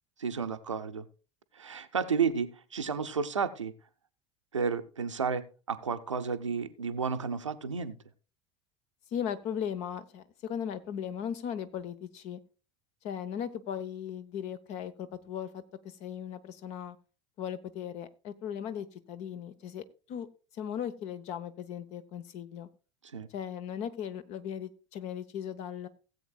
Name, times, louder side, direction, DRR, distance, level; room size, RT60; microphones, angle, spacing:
voice 1, 0.2-1.1 1.6-3.7 4.5-7.9 23.1-23.3, right 5 dB, 80° right, 9 dB, 0.7 m, -32 dB
voice 2, 9.1-12.4 13.0-17.0 17.4-20.3 20.5-22.7 23.3-25.9, left 8 dB, 45° left, 13 dB, 0.9 m, -37 dB
17.0 x 8.0 x 2.3 m, 0.33 s
figure-of-eight pair, 70°, 16 cm